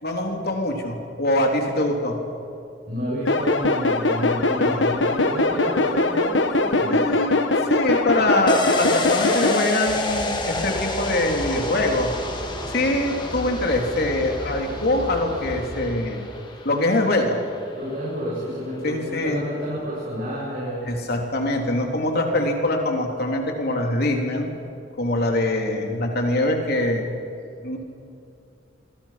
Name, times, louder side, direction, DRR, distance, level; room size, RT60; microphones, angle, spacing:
voice 1, 0.0-2.2 4.6-4.9 6.9-12.1 12.7-16.2 16.6-17.4 18.8-19.4 20.8-24.5 25.0-27.1 27.6-27.8, left 1 dB, 55° left, 2 dB, 3.6 m, -23 dB
voice 2, 2.9-7.1 17.7-20.9, equal, 55° right, -7 dB, 7.4 m, -30 dB
sound 1, 3.3-9.6, left 2 dB, 75° left, 1.4 m, -21 dB
sound 2, 8.5-17.9 18.2-18.3, left 2 dB, 25° left, 2.5 m, -30 dB
sound 3, 9.9-15.8, equal, 20° right, 6.6 m, -36 dB
28.0 x 23.5 x 6.0 m, 2.5 s
head